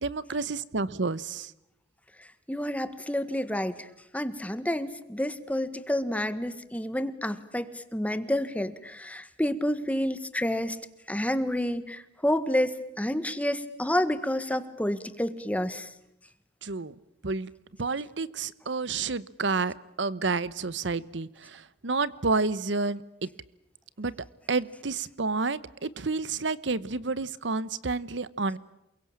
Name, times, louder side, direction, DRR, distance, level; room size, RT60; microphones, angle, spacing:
voice 1, 0.0-1.5 16.6-16.9 17.2-17.5 17.8-23.3 24.0-24.1 24.5-28.6, right 3 dB, 70° right, 18 dB, 1.0 m, -30 dB
voice 2, 2.5-3.9 4.1-10.8 11.1-15.9, left 1 dB, 10° left, 12 dB, 1.5 m, -29 dB
28.5 x 23.0 x 8.7 m, 0.83 s
head